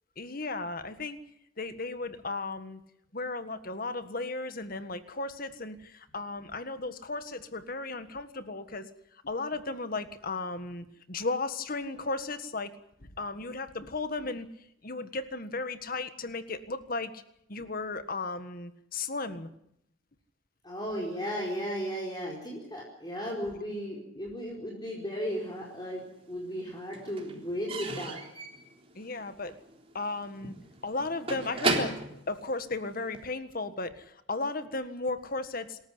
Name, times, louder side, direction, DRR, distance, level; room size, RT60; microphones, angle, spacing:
voice 1, 0.2-1.2 1.6-2.8 3.1-8.9 9.2-12.7 13.0-14.5 14.8-17.2 17.5-19.5 28.9-29.5 29.9-30.5 30.8-35.8, left 3 dB, 45° left, 10 dB, 1.6 m, -35 dB
voice 2, 20.6-28.2, equal, 20° left, -2 dB, 4.6 m, -35 dB
Slam / Squeak / Wood, 25.4-26.3 26.5-33.3, right 3 dB, 30° right, 3.7 m, -35 dB
27.0 x 14.0 x 9.6 m, 0.77 s
head